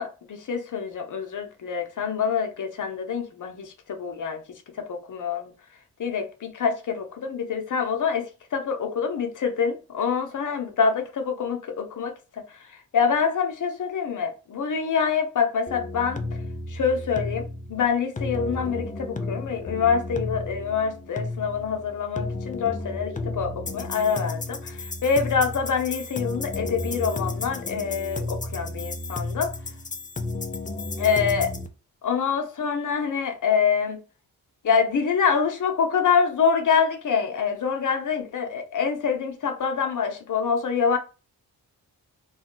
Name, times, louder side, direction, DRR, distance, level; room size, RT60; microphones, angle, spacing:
voice 1, 0.0-5.5 6.0-16.2 16.7-29.5 31.0-31.6 32.0-34.0 34.6-41.0, left 6 dB, 55° left, 0.7 m, -26 dB
sound 1, 15.7-31.7, left 2 dB, 20° left, 0.4 m, -33 dB
2.2 x 2.2 x 3.7 m
cardioid pair, 50°, 38 cm